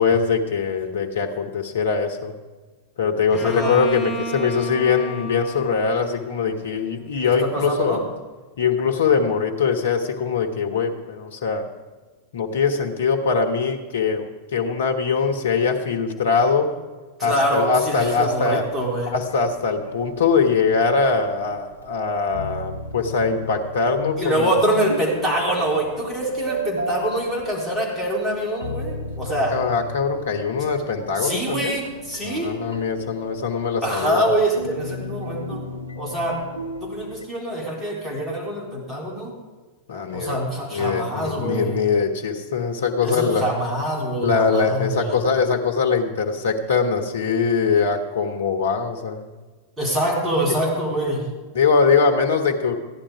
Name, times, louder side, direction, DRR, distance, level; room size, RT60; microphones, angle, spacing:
voice 1, 0.0-2.4 3.0-8.0 8.6-11.7 12.3-16.7 17.2-18.6 19.1-24.5 29.5-31.8 32.2-34.2 39.9-40.4 40.7-43.5 44.2-49.3 51.5-52.8, left 5 dB, 65° left, 5 dB, 1.3 m, -22 dB
Bowed string instrument, 3.3-7.0, right 2 dB, 15° left, 5.3 m, -34 dB
voice 2, 3.4-3.8 7.4-8.0 17.2-19.1 24.2-29.5 31.1-32.6 33.8-35.6 36.0-36.4 36.8-39.3 40.1-41.8 43.0-45.2 49.8-51.3, right 1 dB, 15° right, -3 dB, 3.9 m, -25 dB
sound 1, 17.8-37.2, equal, 90° left, 0.8 m, -35 dB
15.5 x 10.5 x 4.9 m, 1.3 s
figure-of-eight pair, 90°, 0 cm